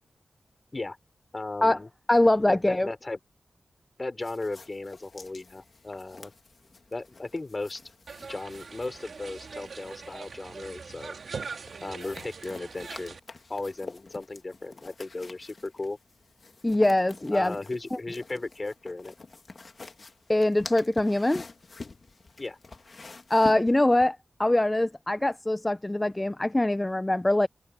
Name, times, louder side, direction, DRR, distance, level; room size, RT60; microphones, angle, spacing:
voice 1, 1.3-1.9 2.5-3.2 4.0-6.3 6.9-7.8 8.3-11.2 11.8-13.2 13.5-16.0 17.3-19.1 22.4-22.6, left 2 dB, 35° left, 4.5 m, -36 dB
voice 2, 2.1-2.9 16.6-17.5 20.3-21.4 23.3-27.5, left 1 dB, 20° left, 0.5 m, -23 dB
sound 1, 4.2-10.4 11.3-24.1, left 3 dB, 55° left, 2.0 m, -47 dB
sound 2, 8.1-13.2, right 5 dB, 80° right, 2.9 m, -42 dB
wide cardioid pair, 70°, 0 cm